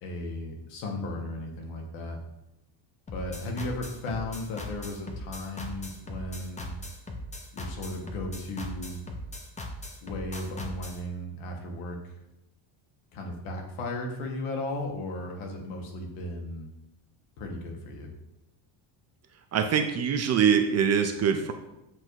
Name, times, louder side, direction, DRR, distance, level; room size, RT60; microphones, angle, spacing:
voice 1, 0.0-2.2 3.1-6.7 7.5-9.0 10.0-12.2 13.1-16.7 17.4-18.1, left 1 dB, 90° left, 1 dB, 1.5 m, -35 dB
sound 1, 3.1-11.0, left 1 dB, 15° left, 0.6 m, -39 dB
voice 2, 19.5-21.5, right 7 dB, 35° right, 6 dB, 0.5 m, -23 dB
7.8 x 2.6 x 4.6 m, 0.91 s
cardioid pair, 145°, 49 cm